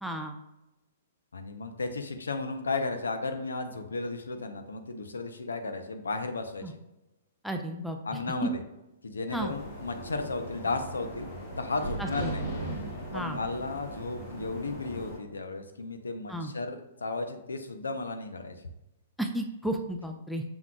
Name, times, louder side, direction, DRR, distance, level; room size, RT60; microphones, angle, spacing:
voice 1, 0.0-0.4 6.6-6.7 7.4-8.0 8.4-8.5 9.3-9.5 12.0-12.3 13.1-13.4 16.3-16.5 19.2-20.4, right 1 dB, ahead, 3 dB, 0.4 m, -33 dB
voice 2, 1.3-6.8 8.0-8.6 9.0-11.3 11.6-12.4 13.1-18.6, left 3 dB, 85° left, 6 dB, 0.5 m, -34 dB
sound 1, 9.3-15.2, right 1 dB, 55° left, 1.5 m, -38 dB
6.1 x 3.5 x 2.2 m, 0.95 s
hypercardioid pair, 120°, 0 cm